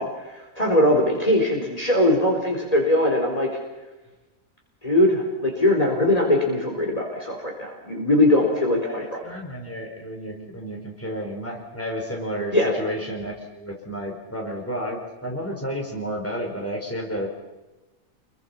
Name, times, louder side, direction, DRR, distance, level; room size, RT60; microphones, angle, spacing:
voice 1, 0.0-3.5 4.8-9.2 12.5-12.7, left 1 dB, 25° left, -1 dB, 4.2 m, -21 dB
voice 2, 8.8-17.3, equal, 10° left, 0 dB, 4.9 m, -31 dB
29.0 x 23.0 x 5.9 m, 1.1 s
omnidirectional pair, 1.4 m